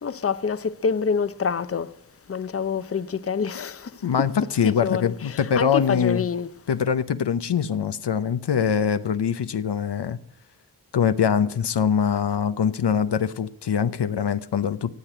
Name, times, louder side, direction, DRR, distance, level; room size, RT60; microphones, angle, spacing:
voice 1, 0.0-1.9 2.3-4.0 4.6-6.5, left 6 dB, 35° left, 0.7 m, -27 dB
voice 2, 4.0-6.2 6.7-10.2 10.9-14.9, left 7 dB, 80° left, 0.7 m, -23 dB
15.0 x 8.3 x 8.8 m
wide cardioid pair, 65°, 40 cm